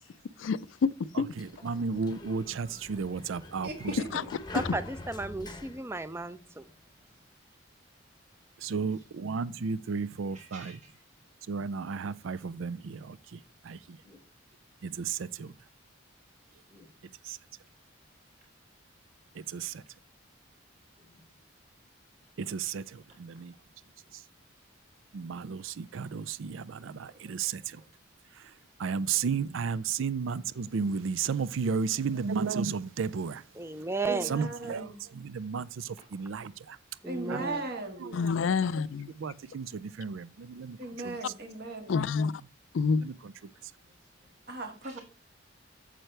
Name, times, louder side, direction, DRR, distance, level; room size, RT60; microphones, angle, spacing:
voice 1, 0.4-0.9 1.2-1.3 4.1-4.2 4.7-4.8 38.1-39.1 41.9-42.3 42.7-43.0, left 5 dB, 75° left, 0.4 m, -27 dB
Sliding door, 1.1-6.7, left 2 dB, 20° left, 0.8 m, -45 dB
voice 2, 1.1-3.9 8.6-10.6 11.5-13.4 13.6-14.0 14.8-15.5 17.3-17.4 19.5-19.8 22.4-23.5 25.1-27.8 28.8-33.4 34.3-36.8 37.3-37.5 38.0-38.2 39.2-40.8 41.0-41.2 43.0-43.3, right 5 dB, 75° right, 0.4 m, -33 dB
voice 3, 3.6-4.3 32.0-32.3 34.0-35.0 37.0-38.1 40.8-42.0 44.5-45.0, right 2 dB, 50° right, 1.9 m, -38 dB
voice 4, 4.5-6.6 33.6-34.3 37.0-37.6 38.0-38.1, right 3 dB, 15° right, 0.5 m, -34 dB
voice 5, 8.7-9.2 10.3-11.0 14.0-14.2 16.7-16.9 21.0-21.3 24.0-24.1 26.7-27.9 29.0-29.2 43.8-44.3 44.8-45.0, right 2 dB, 35° right, 3.7 m, -57 dB
8.9 x 7.7 x 3.3 m
head